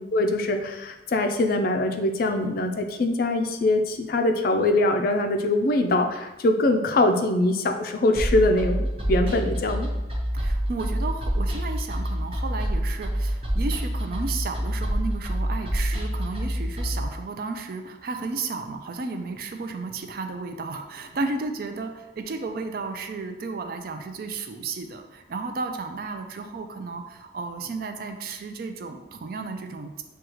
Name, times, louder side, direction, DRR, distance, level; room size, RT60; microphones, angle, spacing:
voice 1, 0.0-9.9, left 2 dB, 50° left, 5 dB, 0.4 m, -23 dB
sound 1, 8.1-17.0, equal, 30° right, 0.8 m, -27 dB
voice 2, 10.3-30.0, right 4 dB, 50° right, 5 dB, 0.4 m, -33 dB
6.2 x 2.3 x 3.0 m, 1.0 s
head